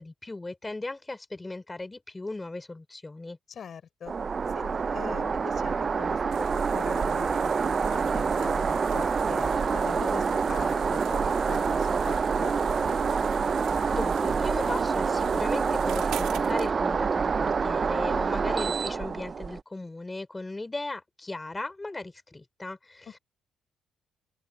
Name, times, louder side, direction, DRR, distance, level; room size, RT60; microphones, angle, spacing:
voice 1, 0.0-3.4 13.9-23.2, left 2 dB, 15° left, 3.4 m, -37 dB
voice 2, 3.5-4.1 4.5-7.5 7.8-13.0, left 7 dB, 55° left, 4.6 m, -42 dB
sound 1, 4.1-19.6, right 5 dB, 40° right, 0.3 m, -27 dB
sound 2, 6.3-16.7, right 12 dB, 85° right, 2.6 m, -45 dB
open air
cardioid pair, 90°, 0 cm